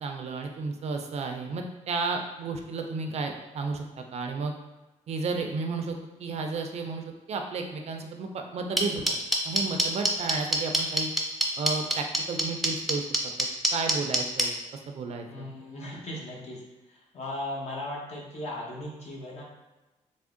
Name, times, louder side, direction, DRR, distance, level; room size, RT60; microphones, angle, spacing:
voice 1, 0.0-4.5 5.1-9.2 9.4-11.1 11.6-13.0 13.4-14.5 14.9-15.5, right 4 dB, 55° right, 4 dB, 0.4 m, -33 dB
sound 1, 8.8-14.4, right 1 dB, ahead, 0.5 m, -23 dB
voice 2, 15.3-16.6 16.9-19.4, left 1 dB, 55° left, -3 dB, 1.0 m, -37 dB
3.5 x 2.1 x 3.6 m, 1.1 s
cardioid pair, 110°, 13 cm